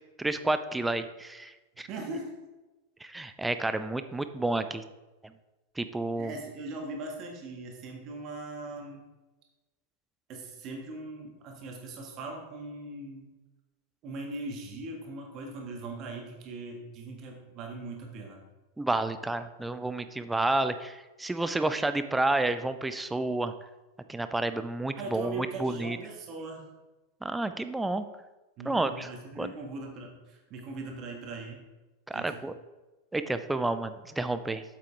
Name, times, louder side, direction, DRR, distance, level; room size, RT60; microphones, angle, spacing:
voice 1, 0.2-1.9 3.0-4.8 5.2-5.3 5.8-6.3 18.8-23.5 24.1-26.0 27.2-28.0 28.7-29.1 29.4-29.5 32.1-32.5 33.1-34.6, right 2 dB, 5° right, 11 dB, 0.5 m, -30 dB
voice 2, 1.9-2.3 6.2-9.1 10.3-13.3 14.0-18.4 24.9-26.7 28.6-31.6 32.1-32.4, right 2 dB, 35° right, 1 dB, 1.8 m, -40 dB
8.3 x 7.6 x 3.5 m, 1.1 s
figure-of-eight pair, 90°, 0 cm